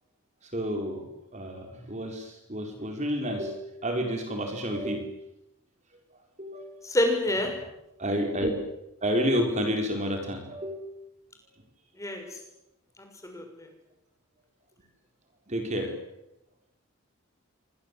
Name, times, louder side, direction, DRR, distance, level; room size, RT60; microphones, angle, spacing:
voice 1, 0.5-1.1 1.3-5.1 6.4-6.7 8.0-8.5 9.0-10.9 15.5-15.9, equal, 30° right, 4 dB, 4.4 m, -30 dB
voice 2, 6.8-7.5 12.0-12.2 13.2-13.7, left 1 dB, 15° left, 3 dB, 6.8 m, -27 dB
28.0 x 25.0 x 8.3 m, 0.86 s
head